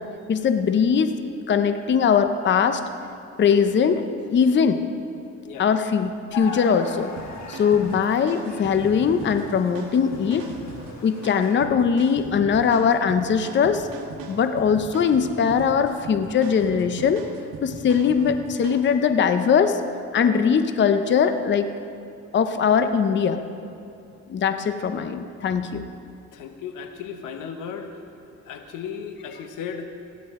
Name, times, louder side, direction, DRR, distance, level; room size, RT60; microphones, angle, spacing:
voice 1, 0.3-1.1 1.5-2.8 3.4-4.0 4.3-4.8 5.6-7.1 7.5-10.5 11.0-13.9 14.3-17.3 17.6-19.8 20.1-21.7 22.3-23.4 24.3-25.8, left 6 dB, 40° left, 9 dB, 0.6 m, -21 dB
sound 1, 6.3-11.5, left 3 dB, 65° left, 1.7 m, -39 dB
sound 2, 7.2-19.0, right 4 dB, 85° right, 1.2 m, -39 dB
voice 2, 26.3-27.9 28.4-29.9, left 7 dB, 90° left, 6 dB, 1.0 m, -35 dB
16.0 x 9.6 x 3.6 m, 2.5 s
cardioid pair, 90°, 30 cm